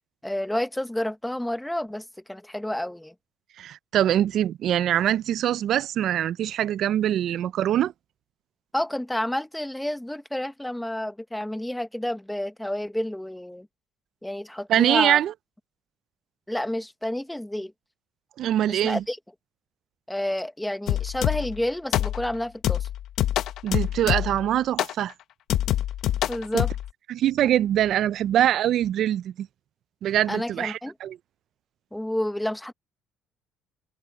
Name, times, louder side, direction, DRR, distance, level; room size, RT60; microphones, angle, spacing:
voice 1, 0.2-3.1 8.7-13.7 14.2-15.2 16.5-17.7 18.7-19.2 20.1-22.9 26.3-26.7 30.3-30.9 31.9-32.7, left 1 dB, 5° left, 1.0 m, -30 dB
voice 2, 3.6-7.9 14.7-15.3 18.4-19.0 23.6-25.1 26.5-26.6 27.1-29.5 30.0-31.2, right 11 dB, 50° right, 0.3 m, -23 dB
sound 1, 20.9-21.6 21.9-22.3 22.6-24.5 24.8-25.0 25.5-26.9, left 12 dB, 60° left, 0.8 m, -26 dB
cardioid pair, 145°, 0 cm